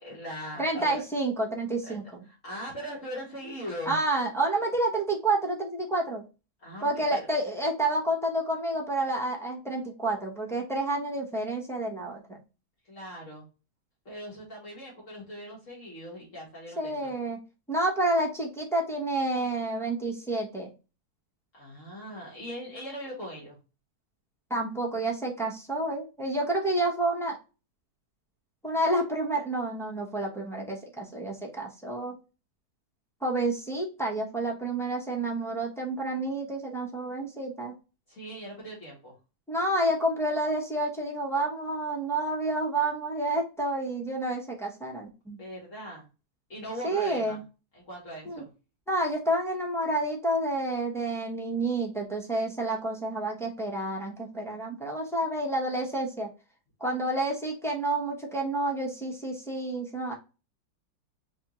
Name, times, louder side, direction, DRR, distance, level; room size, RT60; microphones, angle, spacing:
voice 1, 0.0-1.0 1.8-2.0 2.3-4.0 6.6-7.3 12.9-13.4 14.1-17.2 21.5-23.6 38.1-39.1 45.4-46.1 46.5-47.4 47.7-48.5, equal, 55° left, -5 dB, 1.7 m, -40 dB
voice 2, 0.6-2.0 3.9-6.2 6.8-12.4 16.8-17.4 17.7-20.7 24.5-27.4 28.6-32.1 33.2-37.7 39.5-45.4 46.8-47.4 48.2-48.4 48.9-56.3 56.8-60.1, right 2 dB, 5° left, -2 dB, 0.5 m, -29 dB
5.1 x 2.4 x 2.9 m, 0.31 s
omnidirectional pair, 1.7 m